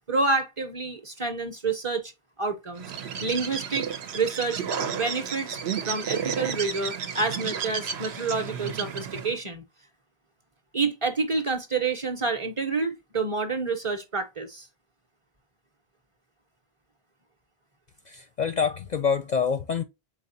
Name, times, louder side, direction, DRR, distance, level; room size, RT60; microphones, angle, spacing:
voice 1, 0.1-2.1 2.4-2.9 3.2-5.6 5.8-9.6 10.7-14.7, right 4 dB, 35° right, 0.8 m, -28 dB
Bird, 2.8-9.4, right 7 dB, 85° right, 1.0 m, -32 dB
voice 2, 18.1-19.8, left 6 dB, 55° left, 0.5 m, -26 dB
4.8 x 3.8 x 2.6 m
omnidirectional pair, 1.1 m